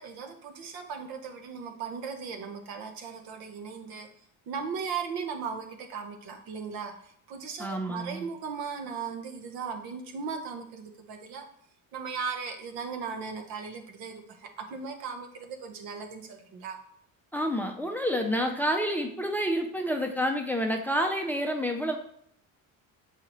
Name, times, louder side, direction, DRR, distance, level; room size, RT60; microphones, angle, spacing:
voice 1, 0.0-4.1 4.5-6.9 7.3-11.4 11.9-14.2 14.7-16.8, right 5 dB, 90° right, 4 dB, 1.1 m, -37 dB
voice 2, 7.6-8.3 17.3-22.0, equal, 5° left, 3 dB, 0.4 m, -29 dB
7.8 x 4.8 x 3.0 m, 0.68 s
cardioid pair, 150°, 35 cm